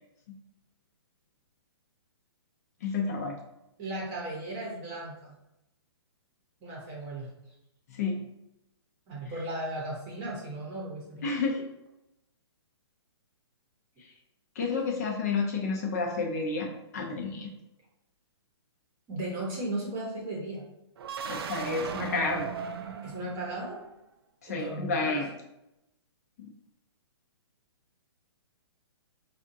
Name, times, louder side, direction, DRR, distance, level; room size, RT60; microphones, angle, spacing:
voice 1, 2.8-3.4 7.9-8.2 11.2-11.6 14.6-17.5 21.2-22.5 24.4-25.3 26.4-26.5, left 4 dB, 35° left, 0 dB, 0.5 m, -30 dB
voice 2, 3.8-5.3 6.6-7.3 9.1-11.4 19.1-20.6 23.0-23.8 24.5-25.1, right 1 dB, 20° right, -3 dB, 0.8 m, -36 dB
sound 1, 21.0-23.9, right 6 dB, 60° right, 0.4 m, -37 dB
4.9 x 2.3 x 2.6 m, 0.89 s
hypercardioid pair, 165°, 14 cm